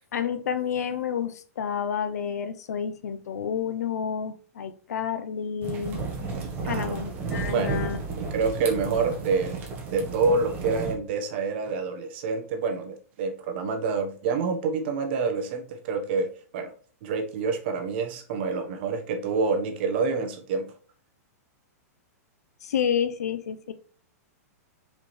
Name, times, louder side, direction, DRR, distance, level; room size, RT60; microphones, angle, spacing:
voice 1, 0.1-6.0 6.6-8.0 22.6-23.7, left 7 dB, 80° left, 1.0 m, -30 dB
sound 1, 5.6-10.9, right 4 dB, 20° right, 1.5 m, -33 dB
voice 2, 6.6-7.0 7.4-7.8 8.2-9.6 9.9-16.7 17.0-20.7, right 4 dB, 40° right, 1.4 m, -27 dB
6.9 x 5.1 x 3.4 m
supercardioid pair, 170°, 9 cm